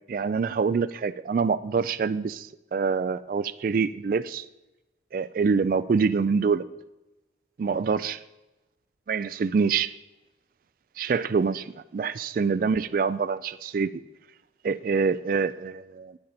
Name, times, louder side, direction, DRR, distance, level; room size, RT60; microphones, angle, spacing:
voice 1, 0.1-4.5 5.1-6.6 7.6-8.2 9.1-9.9 11.0-13.9 14.6-16.2, right 5 dB, 50° right, 14 dB, 0.3 m, -25 dB
10.5 x 9.0 x 4.2 m, 1.0 s
head